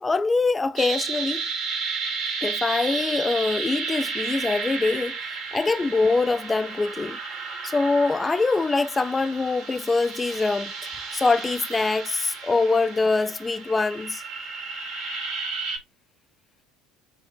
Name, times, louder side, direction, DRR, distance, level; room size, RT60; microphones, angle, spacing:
voice 1, 0.0-1.5 2.4-7.2 7.6-14.2, left 3 dB, 20° left, 0.4 m, -24 dB
sound 1, 0.8-15.8, right 4 dB, 55° right, 1.3 m, -33 dB
6.1 x 2.5 x 2.4 m
figure-of-eight pair, 65°, 0 cm